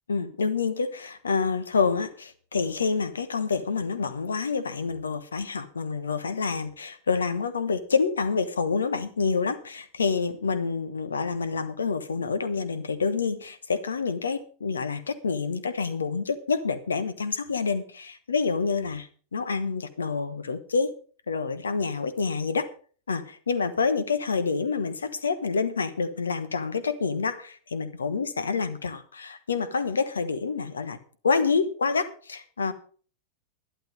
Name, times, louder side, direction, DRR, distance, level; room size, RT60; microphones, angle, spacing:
voice 1, 0.1-20.9 21.3-22.7 23.1-31.0 31.2-32.7, left 5 dB, 70° left, 13 dB, 1.2 m, -27 dB
11.5 x 11.5 x 5.3 m, 0.43 s
figure-of-eight pair, 90°, 0 cm